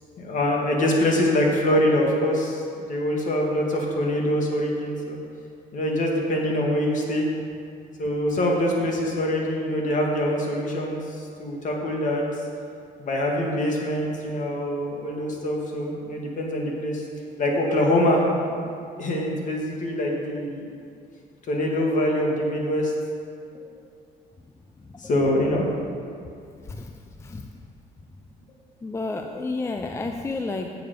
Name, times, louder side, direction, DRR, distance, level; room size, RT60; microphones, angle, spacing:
voice 1, 0.2-5.2 5.7-7.3 8.0-12.2 13.0-17.0 17.4-18.2 19.0-20.7 21.5-22.9 25.0-25.7, left 1 dB, 50° left, -1 dB, 1.8 m, -24 dB
voice 2, 28.8-30.8, left 3 dB, 15° left, 4 dB, 0.4 m, -31 dB
8.6 x 6.9 x 5.1 m, 2.4 s
cardioid pair, 110°, 17 cm